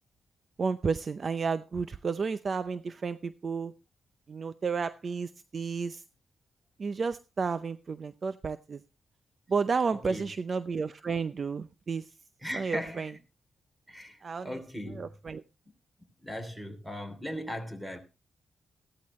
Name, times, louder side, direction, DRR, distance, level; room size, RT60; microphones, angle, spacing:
voice 1, 0.6-3.7 4.3-6.0 6.8-8.8 9.5-12.0 12.5-13.1 14.2-14.6 15.0-15.4, right 5 dB, 45° right, 0.6 m, -32 dB
voice 2, 9.9-10.3 12.4-13.2 13.9-15.1 16.2-18.0, equal, 10° right, 3.1 m, -38 dB
15.5 x 13.0 x 3.1 m
cardioid pair, 90°, 0 cm